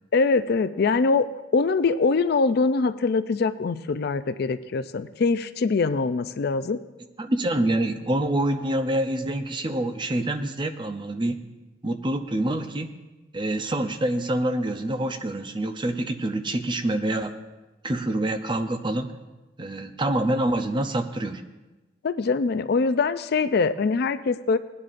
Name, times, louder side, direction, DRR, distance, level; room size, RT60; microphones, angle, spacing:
voice 1, 0.1-6.8 22.0-24.6, left 4 dB, 55° left, 12 dB, 0.4 m, -23 dB
voice 2, 7.2-11.4 11.8-12.9 13.3-17.3 17.8-19.1 19.6-21.4, right 1 dB, 25° right, 8 dB, 0.6 m, -26 dB
18.5 x 9.8 x 2.5 m, 1.1 s
head